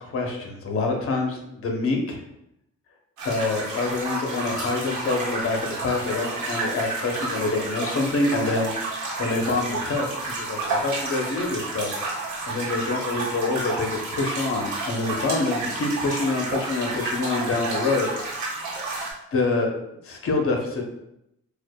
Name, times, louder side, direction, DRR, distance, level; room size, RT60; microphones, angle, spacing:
voice 1, 0.0-2.2 3.2-11.9 12.5-18.1 19.3-19.7 20.0-20.9, left 3 dB, 50° left, 2 dB, 0.8 m, -26 dB
sound 1, 3.2-19.1, right 3 dB, 75° right, 1.2 m, -31 dB
4.6 x 2.3 x 2.2 m, 0.82 s
cardioid pair, 90°, 30 cm